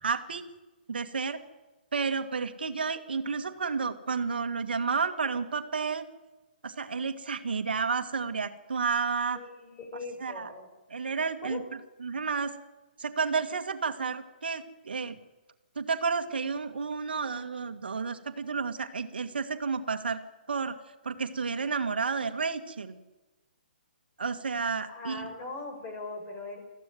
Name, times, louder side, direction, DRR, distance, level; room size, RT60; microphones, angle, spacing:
voice 1, 0.0-0.4 0.9-1.4 1.9-6.1 6.6-9.4 10.2-10.5 10.9-11.6 12.0-12.5 13.0-15.2 15.8-20.2 20.5-20.7 21.0-22.9 24.2-25.3, right 5 dB, 75° right, 8 dB, 1.9 m, -31 dB
voice 2, 9.3-10.7 11.4-11.6 24.9-26.6, left 3 dB, 25° left, 3 dB, 6.2 m, -40 dB
22.5 x 15.0 x 9.5 m, 1.1 s
hypercardioid pair, 145°, 5 cm